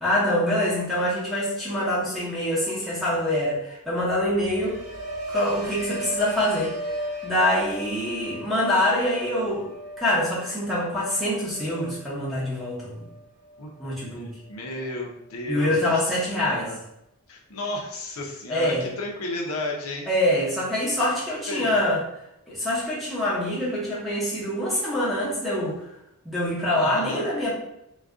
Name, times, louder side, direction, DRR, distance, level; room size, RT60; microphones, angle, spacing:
voice 1, 0.0-4.8 5.3-6.7 7.2-9.7 10.0-13.0 13.8-14.3 15.5-16.7 18.5-18.8 20.1-22.0 22.5-25.8 26.2-27.5, left 1 dB, ahead, -8 dB, 0.8 m, -25 dB
sound 1, 4.0-14.1 14.4-14.9, right 1 dB, 65° right, 0.9 m, -37 dB
voice 2, 14.1-15.8 16.3-16.8 17.3-20.1 21.5-21.7 26.7-27.3, left 1 dB, 65° left, -1 dB, 0.6 m, -33 dB
2.4 x 2.2 x 3.5 m, 0.83 s
head